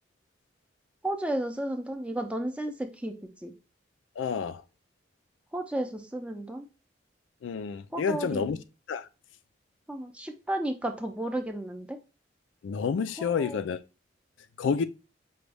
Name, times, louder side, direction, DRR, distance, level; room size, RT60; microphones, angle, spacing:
voice 1, 1.0-3.1 3.4-3.5 5.5-6.7 7.9-8.6 9.9-12.0 13.2-13.6, right 1 dB, 5° right, 0.5 m, -33 dB
voice 2, 4.2-4.6 7.4-8.6 8.9-9.1 12.6-13.8 14.6-14.8, left 6 dB, 85° left, 0.4 m, -29 dB
5.1 x 2.3 x 3.3 m
head